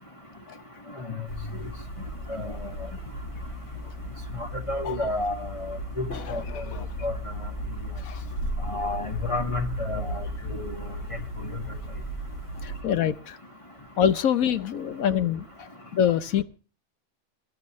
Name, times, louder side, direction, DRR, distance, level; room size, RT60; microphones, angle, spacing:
sound 1, 1.3-12.8, equal, 55° left, 3.3 m, -35 dB
voice 1, 4.4-6.6 7.0-7.1 8.7-10.8, left 2 dB, 20° left, 4 dB, 1.8 m, -31 dB
voice 2, 6.3-6.9 8.0-8.2 12.6-13.4 14.0-16.4, left 9 dB, 75° left, 13 dB, 1.3 m, -26 dB
22.5 x 11.5 x 3.1 m, 0.36 s
omnidirectional pair, 1.5 m